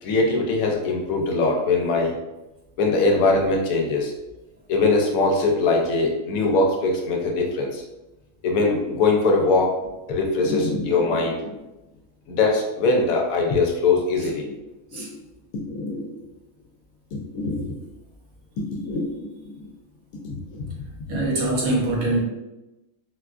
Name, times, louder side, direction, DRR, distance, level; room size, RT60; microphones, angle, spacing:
voice 1, 0.0-2.1 2.8-4.1 4.7-7.8 8.4-9.8 10.1-11.6 12.3-14.6 14.9-15.1 15.7-16.2 17.1-17.8 18.7-19.7 20.2-20.8, left 3 dB, 75° left, 1 dB, 1.0 m, -22 dB
voice 2, 21.1-22.2, right 2 dB, 75° right, -3 dB, 1.3 m, -23 dB
4.1 x 2.3 x 2.4 m, 0.99 s
omnidirectional pair, 1.6 m